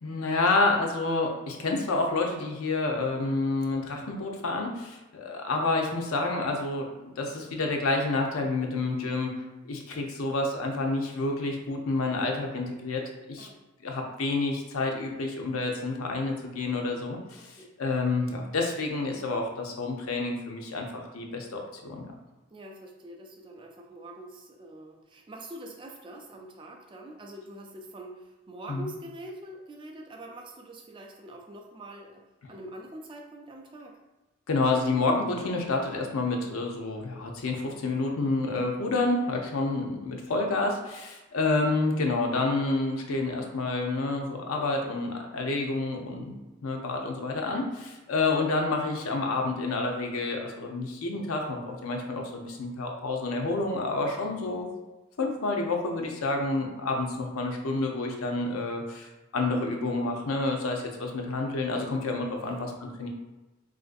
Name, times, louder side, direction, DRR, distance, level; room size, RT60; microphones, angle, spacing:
voice 1, 0.0-9.3 9.7-13.0 13.3-13.5 13.8-22.1 28.7-28.9 34.5-46.4 46.6-54.7 55.2-62.7 63.0-63.1, left 3 dB, 80° left, 2 dB, 0.6 m, -29 dB
voice 2, 17.4-17.7 22.5-33.9 62.4-62.7, right 1 dB, 25° right, 1 dB, 0.3 m, -44 dB
3.8 x 2.5 x 2.5 m, 1.1 s
head